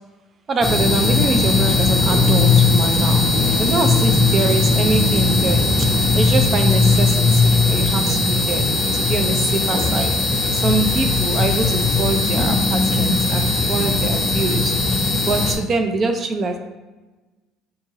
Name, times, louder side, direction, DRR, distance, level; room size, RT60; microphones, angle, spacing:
voice 1, 0.5-3.2 3.6-5.9 6.1-10.2 10.5-16.6, right 3 dB, 35° right, 6 dB, 0.4 m, -24 dB
sound 1, 0.6-15.5, left 3 dB, 20° left, 0.6 m, -18 dB
2.8 x 2.6 x 3.9 m, 1.2 s
cardioid pair, 140°, 0 cm